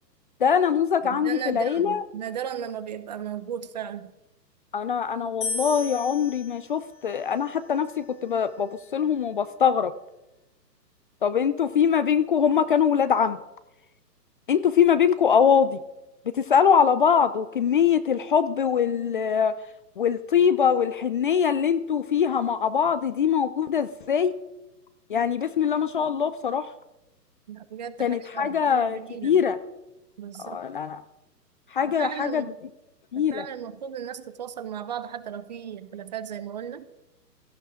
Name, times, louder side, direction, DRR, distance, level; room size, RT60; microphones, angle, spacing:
voice 1, 0.4-2.0 4.7-9.9 11.2-13.4 14.5-15.8 16.3-19.6 20.0-24.3 25.1-26.7 28.0-29.6 30.4-31.0 31.7-32.5 33.1-33.4, left 7 dB, 30° left, 13 dB, 0.5 m, -23 dB
voice 2, 1.1-4.1 27.5-29.4 30.2-30.6 31.8-32.6 33.2-36.9, right 9 dB, 25° right, 13 dB, 0.6 m, -36 dB
sound 1, 5.4-8.6, left 4 dB, 50° left, 5.3 m, -37 dB
17.0 x 13.5 x 4.9 m, 0.94 s
hypercardioid pair, 135°, 50 cm